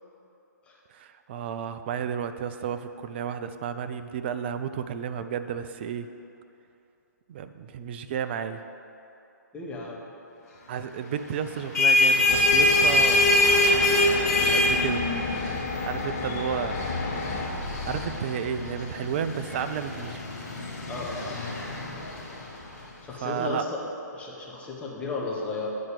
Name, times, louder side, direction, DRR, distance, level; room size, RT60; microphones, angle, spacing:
voice 1, 0.9-6.1 7.3-8.6 10.7-13.2 14.4-15.0 15.4-16.8 17.8-20.2 23.2-23.6, right 8 dB, 35° right, 10 dB, 0.4 m, -32 dB
voice 2, 9.5-10.0 20.9-21.4 23.0-23.8 24.1-25.7, left 3 dB, 10° left, -4 dB, 1.1 m, -34 dB
sound 1, 11.5-22.8, left 2 dB, 55° left, 1.9 m, -25 dB
sound 2, 12.3-17.5, left 4 dB, 35° left, 0.8 m, -33 dB
8.5 x 4.3 x 6.6 m, 2.8 s
figure-of-eight pair, 125°, 10 cm